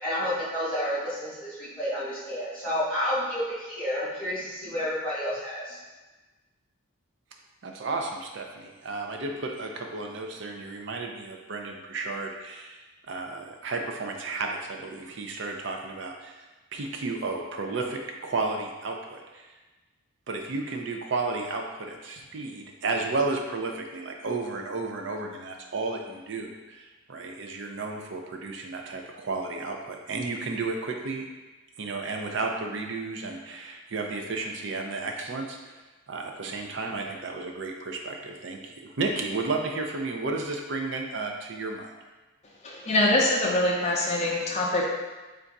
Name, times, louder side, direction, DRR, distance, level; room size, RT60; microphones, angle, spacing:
voice 1, 0.0-5.8, equal, 5° left, -10 dB, 1.3 m, -30 dB
voice 2, 7.6-16.3 16.7-19.4 20.3-31.2 31.8-35.8 36.1-41.9, right 3 dB, 55° right, 2 dB, 0.4 m, -33 dB
voice 3, 42.6-44.8, left 1 dB, 30° left, -4 dB, 0.5 m, -24 dB
3.4 x 2.5 x 4.0 m, 1.2 s
head